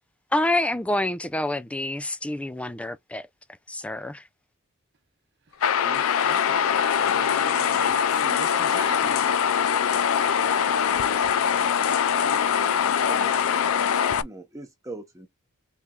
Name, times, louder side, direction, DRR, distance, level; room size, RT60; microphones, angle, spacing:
voice 1, 0.3-3.3 3.7-4.2, left 1 dB, 5° left, 0.3 m, -27 dB
sound 1, 5.6-14.2, left 8 dB, 75° left, 0.4 m, -23 dB
voice 2, 5.8-6.7 7.0-9.2, right 3 dB, 50° right, 0.8 m, -41 dB
voice 3, 12.2-13.7 14.2-15.3, right 2 dB, 15° right, 0.8 m, -42 dB
4.2 x 3.5 x 2.2 m
head